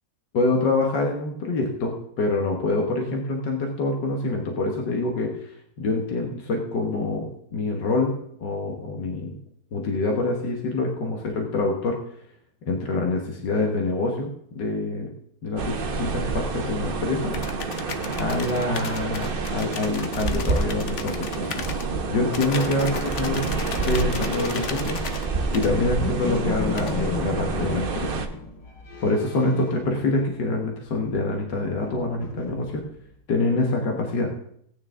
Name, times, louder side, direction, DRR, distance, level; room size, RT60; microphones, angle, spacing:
voice 1, 0.3-9.4 9.7-12.0 12.7-15.1 15.4-17.4 18.2-21.6 22.1-25.3 25.5-28.2 29.0-32.9 33.3-34.3, left 2 dB, 90° left, 1 dB, 2.0 m, -26 dB
sound 1, 15.6-28.3, right 4 dB, 40° right, 0.9 m, -28 dB
sound 2, 17.3-21.9 22.3-25.3 25.5-25.7 26.8-26.9, left 6 dB, 50° left, 1.0 m, -36 dB
sound 3, 25.4-30.6 30.9-33.2, left 3 dB, 70° left, 2.0 m, -36 dB
17.5 x 9.1 x 3.7 m, 0.70 s
omnidirectional pair, 1.8 m